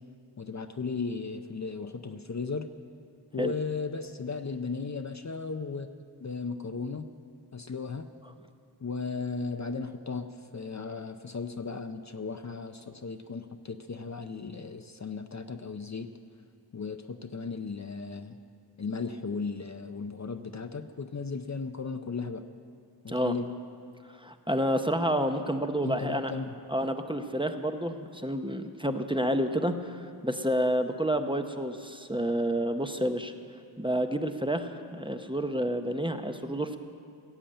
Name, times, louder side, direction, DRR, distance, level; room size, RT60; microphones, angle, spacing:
voice 1, 0.4-2.7 3.3-5.9 6.2-7.1 7.5-8.1 8.8-10.3 10.5-16.1 16.7-18.4 18.8-22.4 23.0-23.5 25.8-26.6, left 4 dB, 40° left, 8 dB, 0.6 m, -36 dB
voice 2, 24.1-26.3 26.7-33.3 33.8-36.8, equal, 10° right, 6 dB, 0.8 m, -29 dB
16.0 x 7.1 x 8.8 m, 2.3 s
wide cardioid pair, 55°, 44 cm